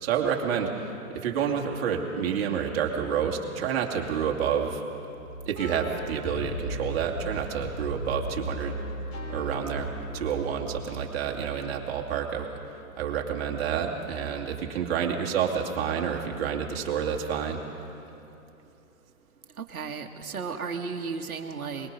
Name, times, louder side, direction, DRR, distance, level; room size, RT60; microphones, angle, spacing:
voice 1, 0.0-4.8 5.5-8.7 9.3-12.5 13.0-17.6, right 7 dB, 45° right, 1 dB, 2.4 m, -29 dB
sound 1, 5.2-11.7, equal, 60° left, 4.0 m, -37 dB
voice 2, 19.6-21.9, right 5 dB, 75° right, 4 dB, 1.7 m, -34 dB
23.5 x 21.0 x 5.3 m, 2.8 s
hypercardioid pair, 130°, 43 cm